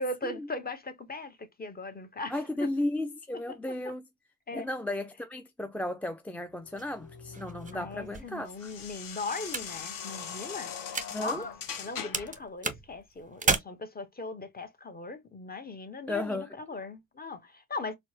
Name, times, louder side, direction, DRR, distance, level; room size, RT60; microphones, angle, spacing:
voice 1, 0.0-2.7 3.5-3.9 4.5-4.7 7.7-10.8 11.2-17.9, left 2 dB, 20° left, 1.0 m, -39 dB
voice 2, 2.3-4.0 4.5-8.7 11.1-11.4 16.1-16.5, left 1 dB, 5° left, 0.3 m, -34 dB
sound 1, 6.6-12.4, left 7 dB, 50° left, 1.0 m, -41 dB
sound 2, 6.8-11.9 12.1-13.6, right 4 dB, 20° right, 0.7 m, -35 dB
4.4 x 2.2 x 2.8 m
hypercardioid pair, 55°, 42 cm